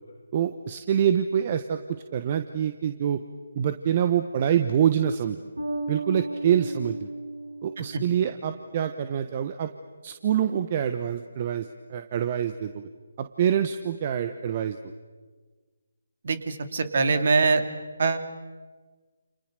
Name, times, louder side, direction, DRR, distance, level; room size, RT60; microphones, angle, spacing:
voice 1, 0.3-3.2 3.5-5.4 5.9-7.1 7.6-9.7 10.0-12.9 13.2-14.9, right 9 dB, 35° right, 9 dB, 1.2 m, -26 dB
Bass guitar, 5.6-8.2, right 2 dB, 80° right, 4.7 m, -34 dB
voice 2, 16.2-17.6 18.0-18.2, right 4 dB, 50° right, 9 dB, 2.7 m, -23 dB
29.5 x 29.0 x 6.7 m, 1.4 s
figure-of-eight pair, 150°, 0 cm